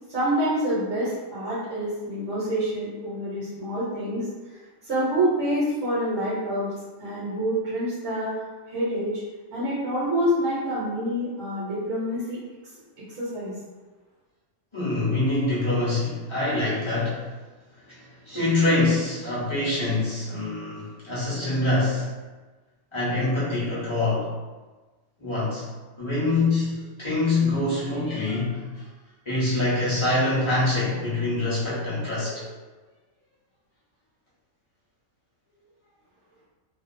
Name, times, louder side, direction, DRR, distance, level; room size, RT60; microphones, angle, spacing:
voice 1, 0.1-6.7 7.0-8.3 8.7-9.2 9.5-12.4 13.1-13.5, equal, 55° right, -10 dB, 1.0 m, -27 dB
voice 2, 14.7-17.2 17.9-22.1 22.9-24.3 25.2-25.6 26.0-28.9 29.2-32.5, left 2 dB, 25° left, -9 dB, 0.7 m, -25 dB
2.5 x 2.3 x 2.5 m, 1.3 s
omnidirectional pair, 1.4 m